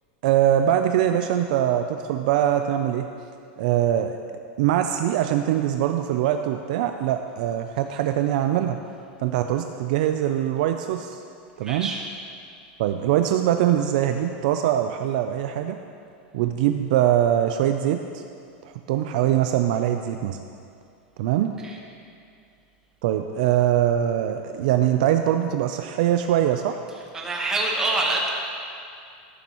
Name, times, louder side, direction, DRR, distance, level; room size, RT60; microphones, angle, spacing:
voice 1, 0.2-3.1 3.6-4.2 4.6-8.8 9.2-11.2 11.6-11.9 12.8-15.8 16.3-18.2 18.6-20.4 21.2-21.5 23.0-26.8, right 11 dB, 50° right, 6 dB, 0.4 m, -22 dB
voice 2, 11.6-12.0 21.6-21.8 27.1-28.3, right 2 dB, 10° right, -1 dB, 1.2 m, -25 dB
13.5 x 11.5 x 3.0 m, 2.4 s
supercardioid pair, 175°, 5 cm